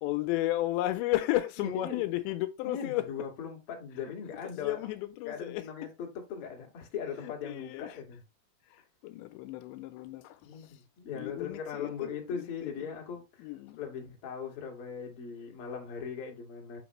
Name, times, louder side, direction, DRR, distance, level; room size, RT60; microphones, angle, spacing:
voice 1, 0.0-3.1 4.4-5.6 7.2-8.0 8.7-10.8 11.2-12.7 13.4-13.8, left 16 dB, 85° left, 2.7 m, -33 dB
voice 2, 1.6-2.1 2.6-4.8 5.2-8.2 10.4-13.5 13.8-16.8, left 6 dB, 65° left, 1.4 m, -39 dB
7.7 x 4.5 x 3.0 m
omnidirectional pair, 5.3 m